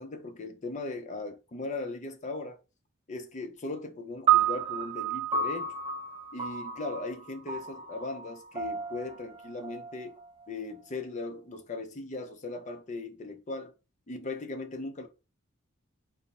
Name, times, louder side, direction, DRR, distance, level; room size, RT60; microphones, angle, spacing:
voice 1, 0.0-2.6 3.1-5.8 6.3-10.2 10.5-13.7 14.1-15.1, left 3 dB, 35° left, 0.5 m, -38 dB
sound 1, 4.3-10.7, right 8 dB, 25° right, 0.4 m, -31 dB
3.8 x 2.1 x 4.1 m
head